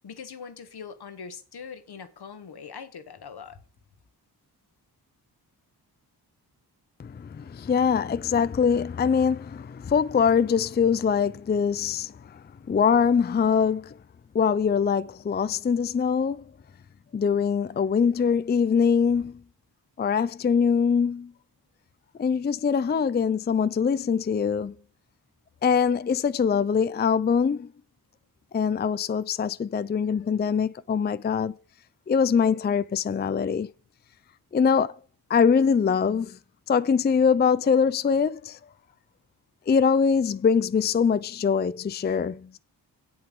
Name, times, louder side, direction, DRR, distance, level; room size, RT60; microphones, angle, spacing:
voice 1, 0.0-3.6, left 6 dB, 75° left, 1.3 m, -42 dB
voice 2, 7.0-13.9 14.3-16.4 17.1-19.4 20.0-21.3 22.2-24.8 25.6-27.7 28.5-31.5 32.1-33.7 34.5-34.9 35.3-36.4 36.7-38.6 39.7-42.6, left 6 dB, 25° left, 0.4 m, -23 dB
8.1 x 7.9 x 5.3 m
cardioid pair, 75°, 39 cm